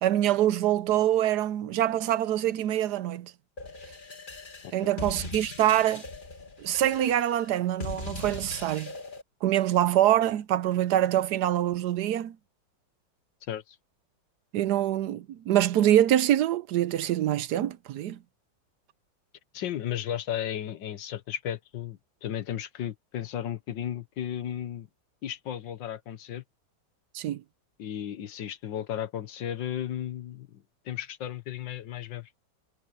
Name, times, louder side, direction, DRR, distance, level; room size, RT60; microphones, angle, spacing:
voice 1, 0.0-3.3 4.7-6.0 6.6-8.9 9.4-12.4 14.5-18.2 27.1-27.4, right 12 dB, 70° right, 1.1 m, -25 dB
sound 1, 3.6-9.2, left 3 dB, 30° left, 1.6 m, -40 dB
voice 2, 19.5-24.9 25.2-26.4 27.8-32.4, left 10 dB, 85° left, 1.8 m, -34 dB
omnidirectional pair, 1.9 m